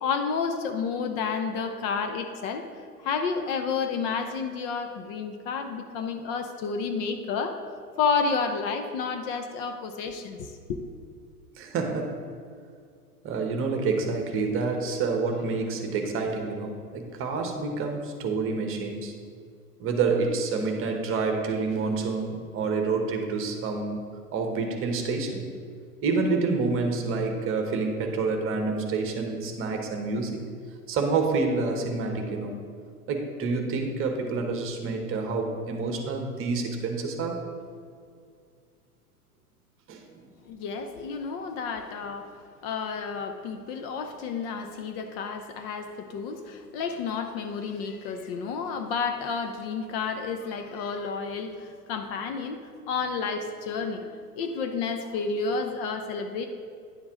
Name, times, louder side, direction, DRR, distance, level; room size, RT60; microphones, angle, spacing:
voice 1, 0.0-2.7 3.0-7.6 8.0-10.8 40.4-42.3 42.6-52.6 52.9-56.5, left 5 dB, 40° left, 6 dB, 0.8 m, -30 dB
voice 2, 11.6-12.2 13.2-19.1 19.8-24.0 24.3-25.4 26.0-30.4 30.9-32.6 33.1-37.4 39.9-40.2, right 4 dB, 30° right, 4 dB, 1.2 m, -28 dB
10.5 x 7.0 x 3.8 m, 2.2 s
figure-of-eight pair, 95°, 46 cm